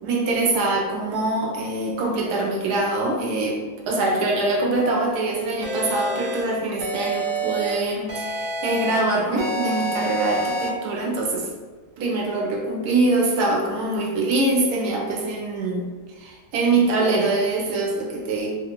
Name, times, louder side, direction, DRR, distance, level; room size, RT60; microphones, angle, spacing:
voice 1, 0.0-3.6 3.9-11.5 12.0-15.8 16.2-18.5, right 2 dB, 80° right, -1 dB, 1.2 m, -23 dB
sound 1, 5.6-6.4 6.8-7.7 8.1-9.0 9.4-10.7, right 1 dB, 60° right, 0.6 m, -27 dB
2.7 x 2.5 x 2.8 m, 1.5 s
omnidirectional pair, 1.6 m